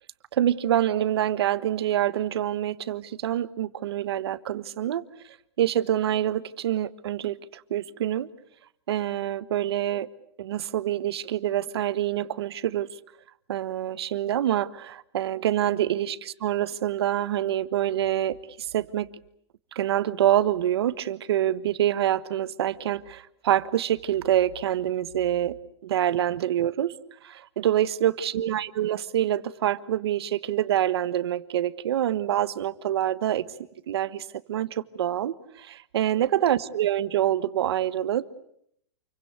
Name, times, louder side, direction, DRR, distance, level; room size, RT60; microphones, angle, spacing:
voice 1, 0.3-5.0 5.6-8.3 8.9-10.1 10.4-12.9 13.5-19.1 19.7-25.5 25.8-26.9 27.2-33.5 33.9-38.3, right 11 dB, 65° right, 1.3 m, -26 dB
28.5 x 23.0 x 8.3 m
supercardioid pair, 170°, 15 cm